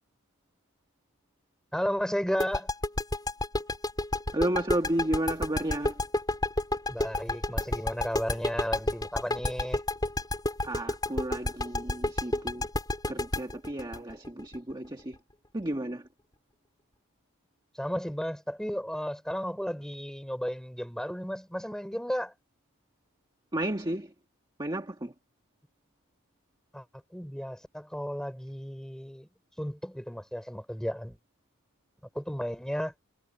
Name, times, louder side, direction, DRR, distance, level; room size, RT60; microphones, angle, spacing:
voice 1, 1.7-2.7 6.9-9.8 17.7-22.3 26.7-26.8 27.1-29.3 29.6-31.2 32.1-32.9, equal, 5° left, 4.8 m, -33 dB
sound 1, 2.4-15.1, left 2 dB, 20° left, 3.4 m, -29 dB
voice 2, 4.3-6.0 10.6-12.7 13.1-15.2 15.5-16.1 23.5-24.1 24.6-25.1, right 1 dB, 20° right, 1.5 m, -32 dB
head